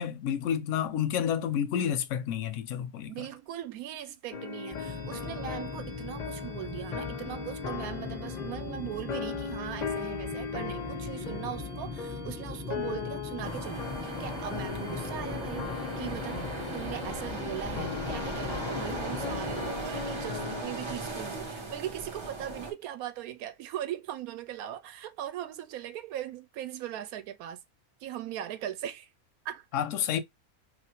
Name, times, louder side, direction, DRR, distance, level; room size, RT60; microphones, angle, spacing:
voice 1, 0.0-3.3 29.7-30.2, left 9 dB, 70° left, 0.8 m, -30 dB
voice 2, 3.1-16.4 16.7-27.6 28.0-29.1 29.4-29.7, right 11 dB, 80° right, 1.0 m, -39 dB
sound 1, 4.3-20.6, left 6 dB, 85° left, 0.3 m, -38 dB
sound 2, 4.7-19.7, left 3 dB, 5° left, 0.8 m, -40 dB
sound 3, 13.4-22.7, right 2 dB, 35° right, 0.4 m, -38 dB
4.2 x 2.4 x 2.8 m
omnidirectional pair, 1.5 m